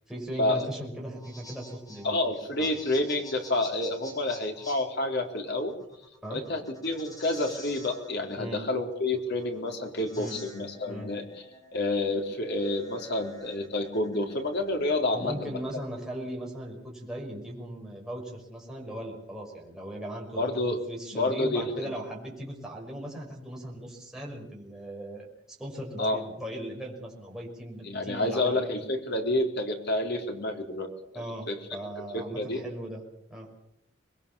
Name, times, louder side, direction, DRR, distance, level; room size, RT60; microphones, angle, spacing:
voice 1, 0.1-2.2 2.6-2.7 6.2-6.4 8.4-8.6 10.2-10.4 10.9-11.1 15.1-20.5 20.9-28.7 31.1-33.0 33.3-33.5, right 1 dB, 5° right, -2 dB, 6.1 m, -38 dB
sound 1, 1.0-15.8, left 1 dB, 20° left, 6.1 m, -50 dB
voice 2, 2.0-5.8 6.3-11.2 11.7-15.6 20.4-20.8 21.1-21.9 26.0-26.2 27.9-31.6 32.1-32.6, left 2 dB, 60° left, 3 dB, 4.0 m, -29 dB
25.0 x 21.5 x 7.1 m, 0.75 s
head